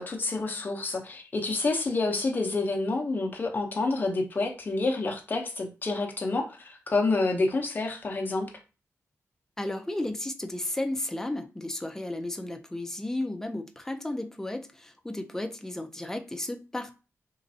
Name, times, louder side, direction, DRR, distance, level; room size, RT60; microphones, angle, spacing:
voice 1, 0.0-8.5, left 3 dB, 35° left, 0.7 m, -28 dB
voice 2, 9.6-16.9, left 1 dB, 10° left, 0.4 m, -33 dB
3.9 x 3.1 x 2.7 m
wide cardioid pair, 175°, 5 cm